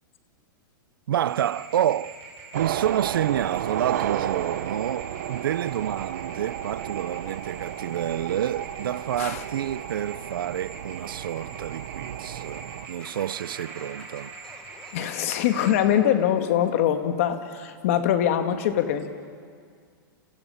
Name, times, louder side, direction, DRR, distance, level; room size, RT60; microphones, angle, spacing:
voice 1, 1.1-2.2 2.5-14.3, right 11 dB, 75° right, 0.6 m, -28 dB
sound 1, 1.2-15.7, right 4 dB, 25° right, 4.4 m, -44 dB
sound 2, 2.5-12.9, right 11 dB, 45° right, 0.9 m, -33 dB
Scratching (performance technique), 13.0-15.8, left 3 dB, 5° left, 1.4 m, -50 dB
voice 2, 14.9-19.1, left 10 dB, 40° left, 1.7 m, -23 dB
29.5 x 29.5 x 5.7 m
supercardioid pair, 180°, 12 cm